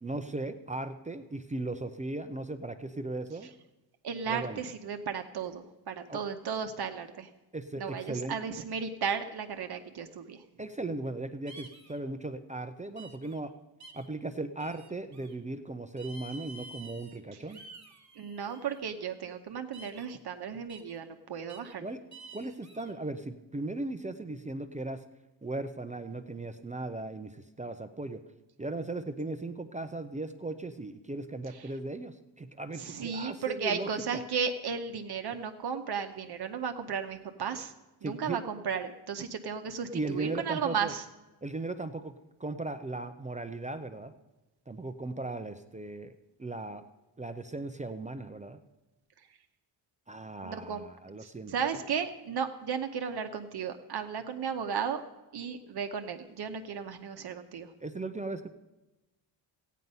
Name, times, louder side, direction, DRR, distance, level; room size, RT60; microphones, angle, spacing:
voice 1, 0.0-3.5 4.3-4.6 6.1-6.2 7.5-8.4 10.6-13.5 13.9-17.6 21.8-22.0 22.3-25.0 25.4-28.2 28.6-34.2 38.0-38.4 39.9-40.9 41.4-42.1 42.4-44.1 44.7-46.1 46.4-46.8 47.2-48.6 50.1-51.5 57.8-58.5, right 2 dB, 15° right, 8 dB, 0.4 m, -37 dB
voice 2, 4.0-7.3 7.8-10.4 18.2-21.8 32.8-37.7 38.0-41.0 50.4-50.9 51.2-55.0 55.3-57.7, right 6 dB, 55° right, 7 dB, 0.8 m, -34 dB
sound 1, 11.5-12.0 13.0-13.4 13.8-14.1 14.6-15.3 16.0-17.2 17.5-18.8 19.7-20.1 20.7-21.0 21.5-21.7 22.1-22.9, right 3 dB, 35° right, 1.4 m, -50 dB
15.0 x 9.3 x 5.4 m, 1.0 s
wide cardioid pair, 170°, 47 cm